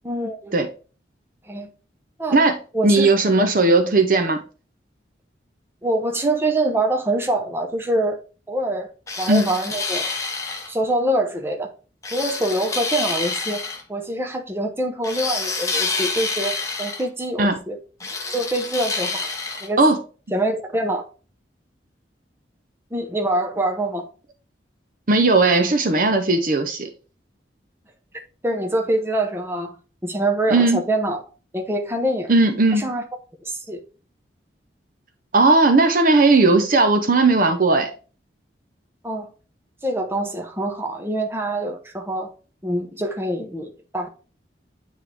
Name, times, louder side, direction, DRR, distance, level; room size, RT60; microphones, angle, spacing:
voice 1, 0.0-0.5 1.5-1.7 2.2-2.4 2.7-3.4 5.8-8.2 8.5-8.9 9.2-10.1 10.7-11.7 12.1-13.6 13.9-17.8 18.3-19.3 19.6-19.8 20.3-21.1 22.9-24.1 28.4-29.8 30.0-31.2 31.5-32.3 32.7-33.0 33.4-33.8 39.0-39.3 39.8-42.3 42.6-44.1, right 1 dB, 15° right, 0.8 m, -25 dB
voice 2, 2.8-4.4 9.3-9.5 17.4-17.6 19.8-20.0 25.1-26.9 30.5-30.8 32.3-32.9 35.3-37.9, right 3 dB, 45° right, 0.7 m, -17 dB
sound 1, 9.1-10.7 12.0-13.8 15.0-17.0 18.0-19.7, left 3 dB, 15° left, 0.8 m, -27 dB
9.1 x 3.2 x 3.4 m
head